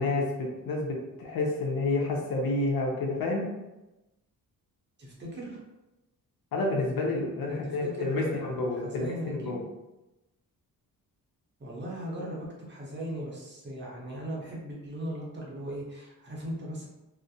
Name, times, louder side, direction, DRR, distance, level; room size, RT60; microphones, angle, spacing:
voice 1, 0.0-3.5 6.5-9.6, left 2 dB, 85° left, 0 dB, 0.6 m, -29 dB
voice 2, 5.0-5.6 7.5-9.6 11.6-16.9, right 1 dB, 30° right, -4 dB, 0.6 m, -38 dB
2.4 x 2.0 x 2.6 m, 0.98 s
wide cardioid pair, 155°, 35 cm